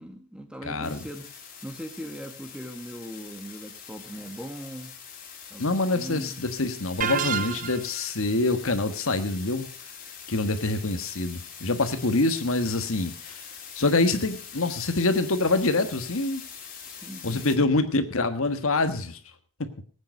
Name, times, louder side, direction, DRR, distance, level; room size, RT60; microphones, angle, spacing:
voice 1, 0.0-4.9 5.5-6.4 10.3-10.6 16.9-17.8, equal, 5° right, 5 dB, 1.8 m, -40 dB
voice 2, 0.6-1.0 5.6-9.7 10.3-13.4 13.8-16.4 17.2-19.2 19.6-19.7, left 2 dB, 75° left, 9 dB, 1.5 m, -25 dB
sound 1, 0.8-17.6, left 7 dB, 40° left, 3.0 m, -44 dB
sound 2, 7.0-8.0, right 7 dB, 35° right, 0.8 m, -29 dB
19.0 x 9.0 x 5.4 m, 0.40 s
head